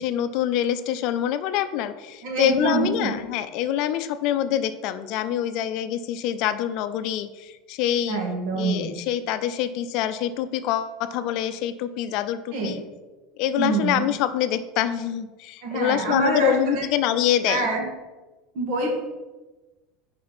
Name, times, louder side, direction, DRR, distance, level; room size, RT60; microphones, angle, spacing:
voice 1, 0.0-8.2 8.5-12.8 13.4-17.7, left 11 dB, 60° left, 12 dB, 0.4 m, -25 dB
voice 2, 2.2-3.1 8.1-8.9 12.5-12.8 13.6-14.1 15.6-16.9 17.5-17.9 18.5-19.0, right 2 dB, 60° right, -1 dB, 2.0 m, -25 dB
5.2 x 4.3 x 5.9 m, 1.2 s
supercardioid pair, 115°, 0 cm